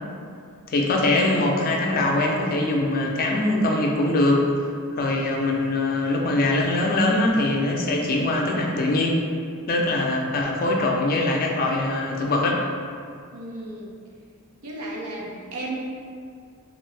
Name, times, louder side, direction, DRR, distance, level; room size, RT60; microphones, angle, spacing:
voice 1, 0.7-4.5 4.9-9.2 9.7-12.6, left 2 dB, 40° left, 0 dB, 0.4 m, -22 dB
voice 2, 13.3-13.9 14.6-15.8, right 2 dB, 90° right, -3 dB, 0.5 m, -34 dB
2.6 x 2.5 x 3.3 m, 2.3 s
head